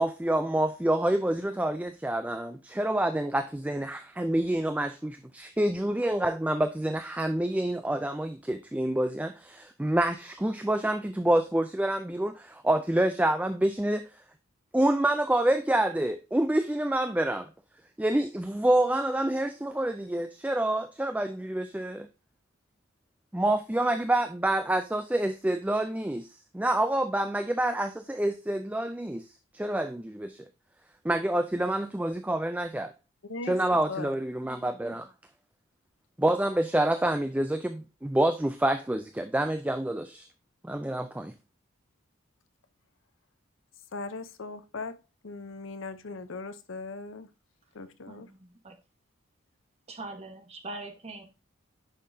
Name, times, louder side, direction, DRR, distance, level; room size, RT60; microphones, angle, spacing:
voice 1, 0.0-14.0 14.7-17.5 18.0-22.1 23.3-29.3 29.5-30.4 31.0-32.9 33.5-35.1 36.2-40.3 40.6-41.3, right 1 dB, 5° right, 0.3 m, -27 dB
voice 2, 33.3-34.2 43.9-47.3 47.7-48.3, left 3 dB, 65° left, 0.7 m, -39 dB
voice 3, 48.1-48.8 49.9-51.2, right 2 dB, 30° right, 1.2 m, -42 dB
10.0 x 5.6 x 2.7 m
head